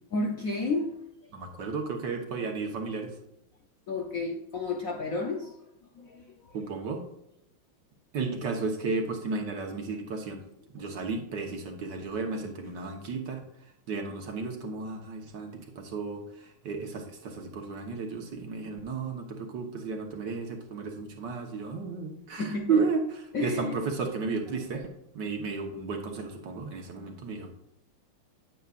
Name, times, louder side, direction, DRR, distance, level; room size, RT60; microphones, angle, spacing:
voice 1, 0.1-1.0 3.9-5.5 6.0-6.6 10.8-10.9 22.4-22.8 23.3-23.8, left 3 dB, 60° left, 2 dB, 0.9 m, -32 dB
voice 2, 1.3-3.1 6.5-7.0 8.1-10.4 10.7-13.4 13.9-24.8 25.1-27.5, right 4 dB, 60° right, 3 dB, 1.7 m, -33 dB
9.4 x 9.0 x 2.4 m, 0.83 s
omnidirectional pair, 2.3 m